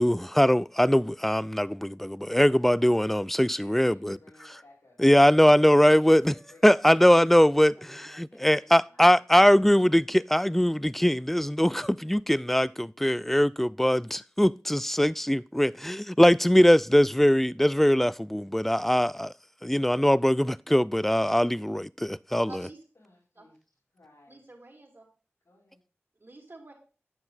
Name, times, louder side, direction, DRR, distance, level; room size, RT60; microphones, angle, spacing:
voice 1, 0.0-4.2 5.0-6.3 6.6-19.3 19.6-22.6, equal, 5° left, 0.3 m, -21 dB
voice 2, 3.6-5.3 5.6-6.9 7.7-9.0 22.9-23.6 23.9-24.4 25.4-25.8, left 2 dB, 90° left, 4.3 m, -57 dB
voice 3, 22.5-22.8 23.4-23.5 24.3-25.0 26.2-26.7, right 2 dB, 50° right, 3.3 m, -48 dB
9.5 x 7.0 x 4.0 m
wide cardioid pair, 50°, 5 cm